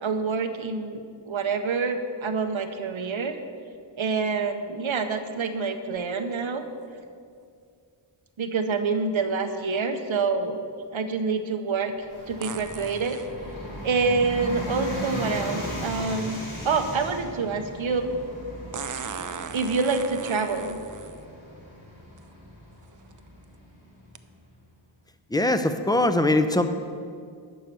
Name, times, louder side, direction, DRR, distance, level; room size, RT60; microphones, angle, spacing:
voice 1, 0.0-3.4 4.0-6.6 8.4-10.6 10.9-11.9 12.3-13.2 13.8-18.1 19.5-20.8, right 4 dB, 75° right, 8 dB, 0.8 m, -27 dB
sound 1, 6.0-6.1 12.4-13.3 15.3-15.4 18.7-21.2 22.2-22.3 22.9-23.2 24.1-24.2, right 6 dB, 40° right, 0.5 m, -37 dB
Bus, 12.0-24.3, equal, 70° left, 2.6 m, -38 dB
sound 2, 13.5-17.3, left 2 dB, 90° left, 1.8 m, -46 dB
voice 2, 25.3-26.7, left 2 dB, 10° left, 9 dB, 0.6 m, -22 dB
11.0 x 4.7 x 6.8 m, 2.3 s
wide cardioid pair, 45°, 47 cm